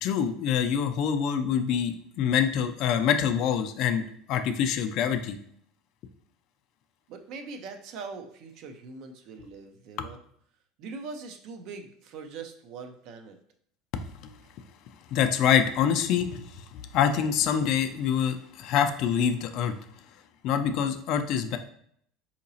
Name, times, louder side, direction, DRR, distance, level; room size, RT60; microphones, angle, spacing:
voice 1, 0.0-4.0 4.3-5.4 10.0-10.1 13.9-14.3 15.1-19.7 20.4-21.6, left 8 dB, 60° left, 7 dB, 0.4 m, -26 dB
voice 2, 7.1-10.2 10.8-13.4, right 4 dB, 60° right, 6 dB, 0.5 m, -42 dB
3.8 x 2.8 x 2.7 m, 0.66 s
supercardioid pair, 120°, 0 cm